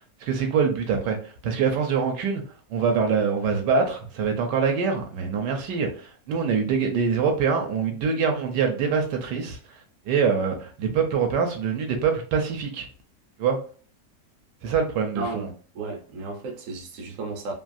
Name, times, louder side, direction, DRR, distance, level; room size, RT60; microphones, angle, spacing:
voice 1, 0.2-2.4 2.7-12.9 13.4-13.6 14.6-15.5, right 6 dB, 80° right, 1.2 m, -24 dB
voice 2, 15.1-17.5, right 3 dB, 60° right, 1.0 m, -34 dB
3.1 x 2.3 x 2.5 m
omnidirectional pair, 1.8 m